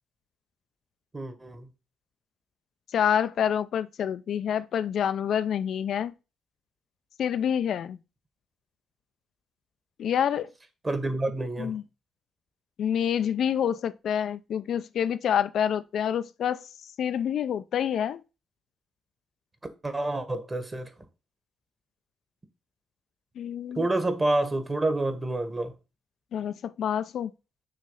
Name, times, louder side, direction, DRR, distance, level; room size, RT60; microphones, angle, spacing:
voice 1, 1.1-1.7 10.8-11.7 19.8-20.9 23.7-25.7, right 2 dB, 25° right, 1.3 m, -28 dB
voice 2, 2.9-6.1 7.2-8.0 10.0-10.5 11.6-11.8 12.8-16.7 17.0-18.2 23.4-23.9 26.3-27.3, left 9 dB, 65° left, 0.4 m, -27 dB
6.3 x 3.2 x 5.5 m
cardioid pair, 90°, 0 cm